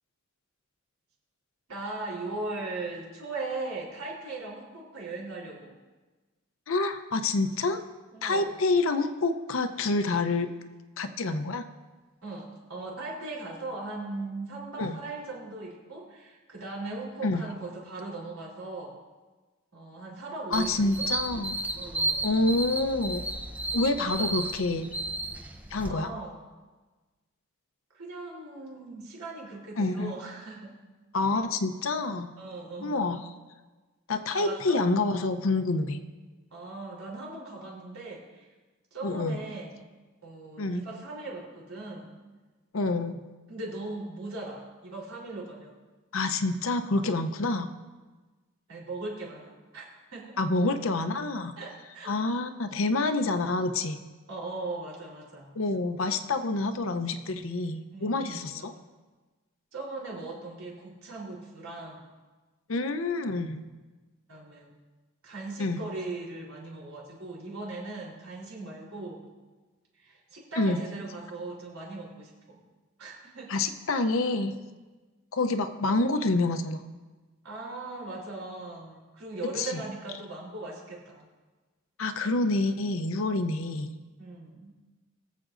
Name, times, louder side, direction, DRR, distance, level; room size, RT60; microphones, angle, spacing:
voice 1, 1.7-5.8 8.1-8.6 12.2-18.9 19.7-21.1 21.8-22.3 24.2-24.3 25.8-26.4 27.9-30.8 32.4-33.0 34.3-35.1 36.5-38.5 38.9-39.8 40.2-42.2 43.5-45.7 47.2-47.4 48.7-50.4 51.6-52.2 54.3-55.6 57.9-58.7 59.7-62.0 64.3-64.7 65.2-69.3 69.9-72.6 73.0-73.5 77.4-81.3 84.2-84.7, right 2 dB, 85° right, -4 dB, 3.6 m, -39 dB
voice 2, 6.7-7.8 8.2-10.5 11.0-11.6 14.8-15.0 17.2-17.5 20.5-21.6 22.2-23.2 23.7-24.9 25.7-26.1 29.8-30.1 31.1-32.3 32.8-33.2 34.1-36.0 39.0-39.4 40.6-40.8 42.7-43.2 46.1-47.7 50.4-51.5 52.1-54.0 55.5-58.7 62.7-63.6 65.6-65.8 70.6-70.8 73.5-74.6 75.3-76.8 79.6-79.8 82.0-83.9, left 2 dB, 70° left, 9 dB, 0.7 m, -27 dB
sound 1, 20.5-25.9, right 2 dB, 5° right, 0.5 m, -33 dB
22.5 x 7.6 x 2.6 m, 1.3 s
head